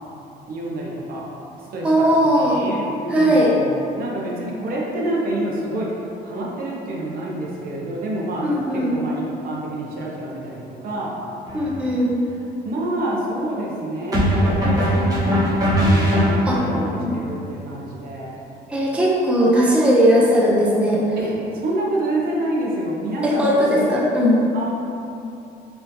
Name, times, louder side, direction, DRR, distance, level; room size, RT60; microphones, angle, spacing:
voice 1, 0.5-1.3 1.7-5.9 6.2-11.2 12.6-18.3 21.2-21.3 21.6-24.1 24.5-24.7, right 1 dB, 60° right, -4 dB, 0.8 m, -28 dB
voice 2, 1.8-2.6 3.1-3.5 8.4-8.9 11.5-12.1 16.5-16.6 17.0-17.2 18.7-21.2 23.2-24.4, equal, 5° right, -4 dB, 0.5 m, -18 dB
sound 1, 11.5-11.7 14.1-16.8, equal, 20° right, 0.9 m, -19 dB
4.1 x 2.6 x 2.8 m, 2.8 s
cardioid pair, 110°, 17 cm